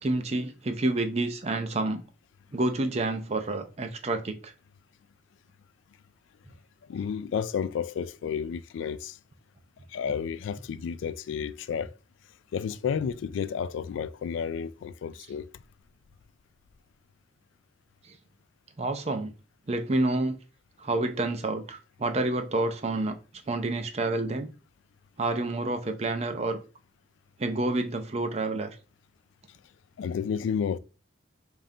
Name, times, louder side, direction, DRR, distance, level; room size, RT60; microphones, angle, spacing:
voice 1, 0.0-2.0 2.5-4.5 18.1-18.2 18.8-19.3 19.7-20.4 20.8-23.2 23.5-24.5 25.2-26.6 27.4-28.7, right 2 dB, 35° right, 0.5 m, -28 dB
voice 2, 6.8-9.2 9.9-11.9 12.5-15.5 30.0-30.8, left 7 dB, 85° left, 0.3 m, -31 dB
5.2 x 2.5 x 2.7 m
head